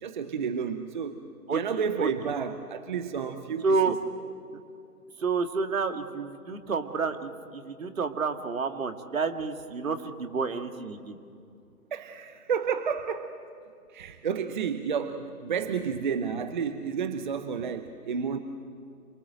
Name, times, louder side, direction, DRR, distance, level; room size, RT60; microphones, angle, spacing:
voice 1, 0.0-1.2 1.5-4.0 11.9-13.3 13.9-18.4, right 6 dB, 30° right, 10 dB, 0.8 m, -31 dB
voice 2, 1.5-2.1 3.6-4.0 5.2-11.2, right 4 dB, 60° right, 7 dB, 2.1 m, -29 dB
27.5 x 22.5 x 7.9 m, 2.4 s
figure-of-eight pair, 140°, 47 cm